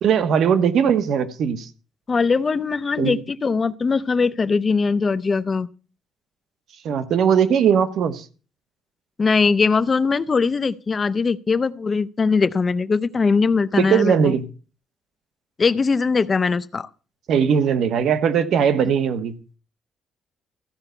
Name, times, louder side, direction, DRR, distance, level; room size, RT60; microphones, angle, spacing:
voice 1, 0.0-1.7 3.0-3.2 6.8-8.2 13.8-14.5 17.3-19.3, right 7 dB, 60° right, 1.1 m, -19 dB
voice 2, 2.1-5.7 9.2-14.3 15.6-16.9, left 4 dB, 25° left, 0.5 m, -21 dB
14.5 x 5.5 x 8.0 m
cardioid pair, 160°, 0 cm